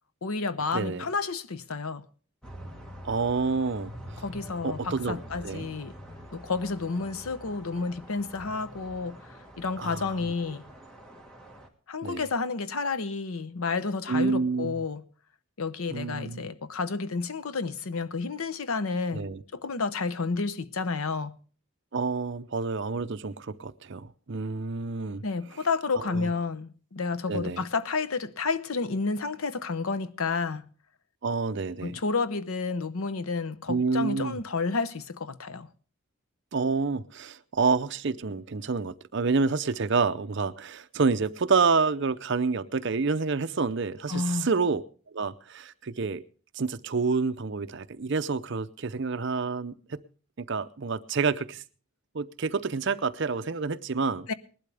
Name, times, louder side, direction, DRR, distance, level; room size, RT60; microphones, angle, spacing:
voice 1, 0.2-2.1 4.2-6.0 6.3-10.7 11.9-15.0 15.6-21.4 25.2-30.6 31.8-35.7 44.1-44.5 54.3-54.4, left 4 dB, 75° left, 0.8 m, -30 dB
voice 2, 0.7-1.1 3.0-4.2 4.6-5.7 9.8-10.1 12.0-12.2 14.1-14.8 15.9-16.5 19.1-19.4 21.9-25.2 26.0-26.3 27.3-27.6 31.2-32.0 33.7-34.4 36.5-44.8 45.1-46.2 46.5-50.0 50.5-51.6 52.1-54.3, right 4 dB, 55° right, 0.6 m, -28 dB
sound 1, 2.4-11.7, equal, 5° left, 1.6 m, -45 dB
19.5 x 12.0 x 3.4 m
head